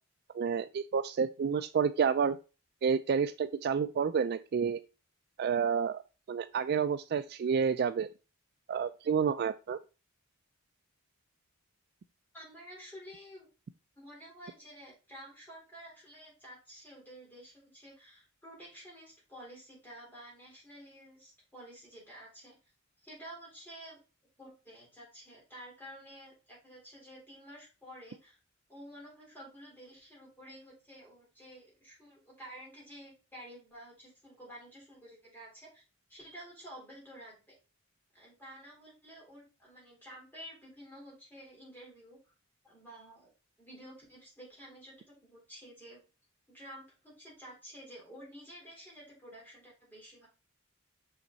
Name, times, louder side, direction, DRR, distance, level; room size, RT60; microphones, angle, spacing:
voice 1, 0.3-2.4 2.8-4.8 5.4-6.0 6.3-8.1 8.7-9.8, right 6 dB, 45° right, 13 dB, 0.3 m, -29 dB
voice 2, 12.3-13.5 13.9-22.6 23.0-24.0 24.4-28.4 28.7-35.8 36.1-37.6 38.1-42.3 42.6-43.3 43.6-46.0 46.5-50.3, equal, 10° left, -5 dB, 4.0 m, -51 dB
6.2 x 5.8 x 4.0 m, 0.32 s
head